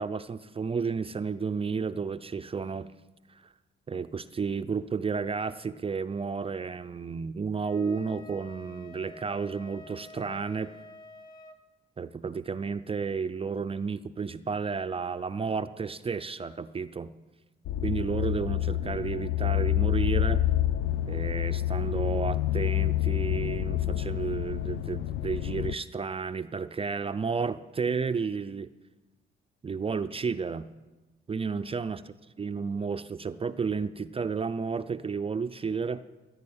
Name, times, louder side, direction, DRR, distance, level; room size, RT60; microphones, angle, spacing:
voice 1, 0.0-2.9 3.3-3.5 3.9-10.7 12.0-17.1 17.8-20.4 21.1-28.7 29.6-30.7 31.3-32.0 32.4-36.0, right 5 dB, 30° right, 10 dB, 0.5 m, -32 dB
Wind instrument woodwind instrument, 7.6-11.6, left 1 dB, 45° left, 2.0 m, -48 dB
sound 1, 17.6-25.7, left 13 dB, 75° left, 0.5 m, -28 dB
15.0 x 10.5 x 8.8 m, 1.2 s
cardioid pair, 90°, 20 cm